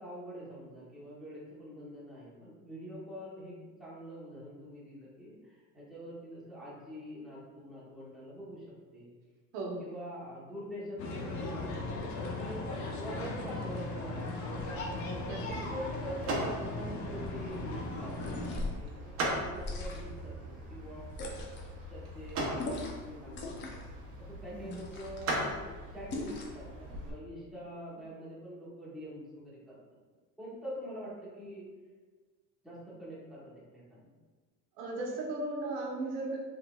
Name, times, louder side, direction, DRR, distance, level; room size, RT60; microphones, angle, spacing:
voice 1, 0.0-8.6 8.9-9.1 9.8-14.7 15.3-18.9 19.2-21.2 21.9-23.8 24.2-29.8 30.4-31.6 32.6-34.1, equal, ahead, -8 dB, 1.1 m, -45 dB
sound 1, 11.0-18.6, left 2 dB, 55° left, 0.9 m, -38 dB
sound 2, 14.6-27.1, right 1 dB, 40° right, 0.9 m, -40 dB
sound 3, 18.1-18.8 19.5-20.2 21.1-21.7 22.6-23.1 23.3-23.9 24.7-25.3 26.1-26.6, left 2 dB, 30° left, 0.7 m, -40 dB
voice 2, 34.8-36.4, right 2 dB, 80° right, -2 dB, 1.2 m, -36 dB
5.7 x 3.5 x 2.4 m, 1.3 s
cardioid pair, 155°, 36 cm